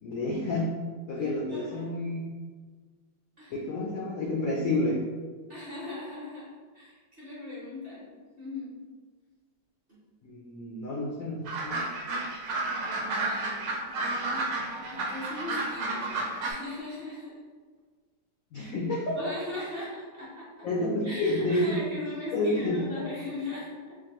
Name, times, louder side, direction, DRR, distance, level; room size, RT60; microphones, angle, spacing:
voice 1, 0.0-0.7 1.1-2.3 3.5-5.0 10.2-11.8 18.5-19.2 20.6-21.7 22.3-22.8, left 2 dB, 80° left, -3 dB, 0.7 m, -29 dB
voice 2, 1.5-1.9 3.4-3.5 5.5-6.5 6.7-8.7 9.9-10.0 12.6-16.1 16.4-17.4 18.6-18.7 19.1-20.7 21.0-24.0, left 2 dB, 40° right, -8 dB, 0.9 m, -39 dB
sound 1, 11.5-16.5, right 2 dB, 75° right, 1.2 m, -31 dB
4.4 x 2.5 x 2.9 m, 1.4 s
omnidirectional pair, 2.1 m